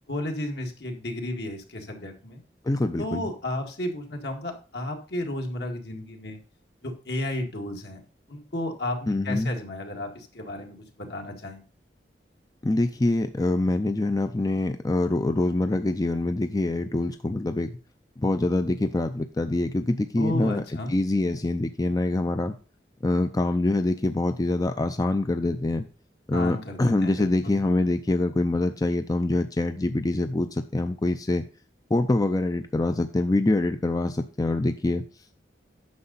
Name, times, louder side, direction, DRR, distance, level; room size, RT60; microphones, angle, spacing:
voice 1, 0.1-2.4 3.0-6.4 6.8-8.0 8.3-11.6 20.2-20.9 26.3-27.6, left 1 dB, 70° left, 2 dB, 2.0 m, -33 dB
voice 2, 2.7-3.2 9.1-9.5 12.6-17.8 18.2-20.6 20.9-22.6 23.0-25.9 26.3-31.4 31.9-35.0, left 2 dB, 20° left, 8 dB, 0.5 m, -25 dB
9.6 x 6.6 x 4.0 m, 0.35 s
head